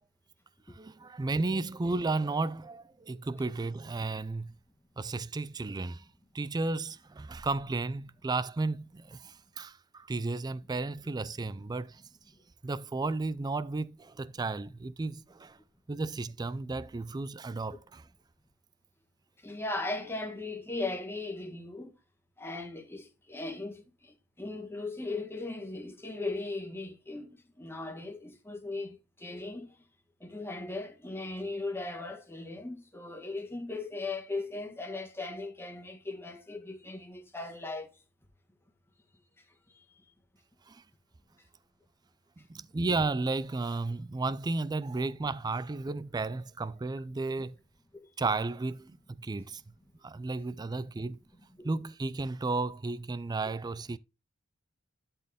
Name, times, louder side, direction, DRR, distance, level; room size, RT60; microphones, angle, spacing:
voice 1, 0.7-4.6 5.0-6.1 6.3-12.0 12.6-15.6 15.9-18.1 40.7-40.8 42.4-47.6 48.2-49.6 50.0-51.2 51.6-54.0, right 3 dB, 20° right, 0.3 m, -33 dB
voice 2, 19.4-21.9 22.4-23.8 24.4-27.3 27.6-29.7 30.2-37.9 51.6-51.7, left 2 dB, 10° left, 1.6 m, -38 dB
11.5 x 4.4 x 3.6 m
head